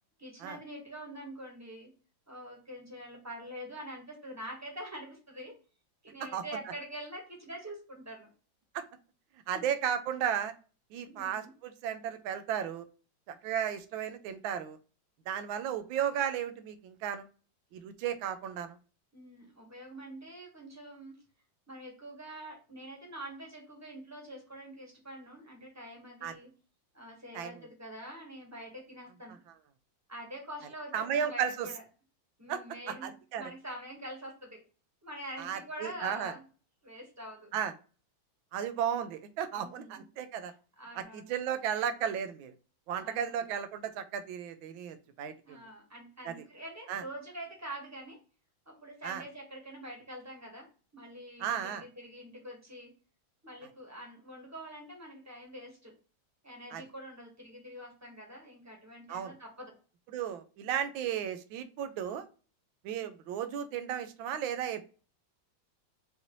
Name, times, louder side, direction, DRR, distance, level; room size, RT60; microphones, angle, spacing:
voice 1, 0.2-1.9 2.3-5.5 6.0-8.3 9.5-9.7 11.1-11.5 19.1-21.1 21.7-26.5 26.9-29.4 30.1-31.8 32.4-34.6 35.0-36.4 36.8-37.5 39.5-40.0 40.8-41.3 43.0-43.3 45.4-48.2 48.7-50.7 50.9-52.9 53.4-55.9 56.4-59.7, right 1 dB, 10° right, -1 dB, 1.0 m, -45 dB
voice 2, 9.5-10.5 10.9-12.9 13.3-14.8 15.3-17.3 17.7-18.8 26.2-26.3 27.3-27.5 30.9-31.7 32.5-32.6 32.9-33.4 35.4-36.3 37.5-37.7 38.5-40.5 40.9-42.5 42.9-45.6 46.2-46.3 46.9-47.0 49.0-49.2 51.4-51.8 56.7-56.8 59.1-59.3 60.1-62.3 62.8-64.9, right 9 dB, 85° right, 11 dB, 1.4 m, -34 dB
5.6 x 2.6 x 3.0 m, 0.36 s
omnidirectional pair, 2.1 m